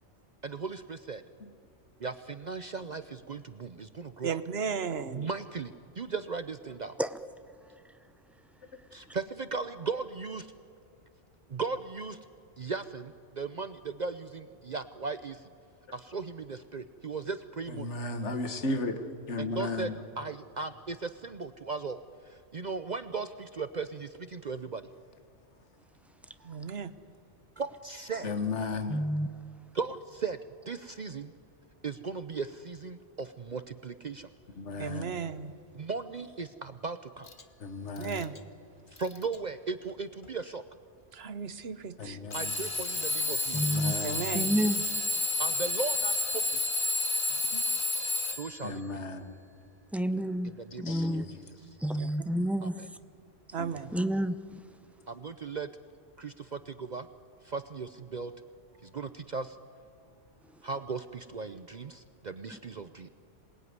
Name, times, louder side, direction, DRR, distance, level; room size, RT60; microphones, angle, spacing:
voice 1, 0.4-1.2 2.0-4.4 5.1-7.0 8.9-10.4 11.5-12.2 12.6-15.5 15.9-17.9 19.4-19.9 20.2-24.9 26.4-26.6 27.6-28.3 29.7-30.4 30.7-31.3 31.8-34.3 35.7-37.3 38.9-40.6 42.3-43.8 45.4-46.6 48.2-49.0 50.4-51.2 51.6-51.7 52.6-52.9 55.1-55.7 56.2-57.1 57.4-58.3 58.8-59.6 60.6-63.1, right 4 dB, 45° right, 11 dB, 0.7 m, -37 dB
voice 2, 4.2-5.3 26.4-26.9 34.8-35.5 38.0-38.4 41.1-42.2 44.0-44.5 47.3-47.6 51.9-52.1 53.5-53.9, right 6 dB, 60° right, 12 dB, 1.3 m, -35 dB
voice 3, 17.7-19.0 19.3-20.0 28.2-29.1 34.6-35.2 37.6-38.3 42.0-42.6 43.5-44.3 48.6-49.4 50.8-51.7 53.6-53.9, left 3 dB, 75° left, 8 dB, 1.8 m, -35 dB
voice 4, 28.9-29.3 43.5-43.9 44.3-44.7 49.9-50.5 50.8-51.2 51.8-52.7 53.9-54.3, equal, ahead, 11 dB, 0.6 m, -28 dB
Alarm / Clock, 37.3-37.4 38.0-38.4 39.0-39.4 40.2-40.3 42.3-48.7, left 2 dB, 45° left, 1.4 m, -30 dB
26.5 x 20.0 x 9.5 m, 2.5 s
omnidirectional pair, 1.2 m